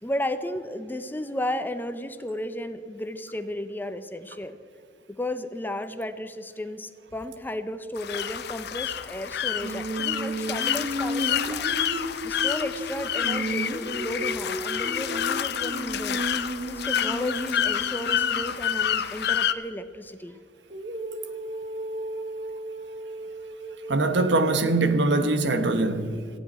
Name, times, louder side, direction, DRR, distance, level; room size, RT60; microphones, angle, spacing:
voice 1, 0.0-4.6 5.1-11.7 12.2-16.2 16.7-20.4 22.1-22.3, left 1 dB, 10° left, 0.7 m, -34 dB
sound 1, 8.0-19.5, left 9 dB, 65° left, 0.7 m, -28 dB
Female singing, 9.6-18.5 20.7-24.9, right 1 dB, 40° right, 1.1 m, -34 dB
voice 2, 23.9-26.3, right 2 dB, 70° right, 1.2 m, -23 dB
18.5 x 15.0 x 4.3 m
head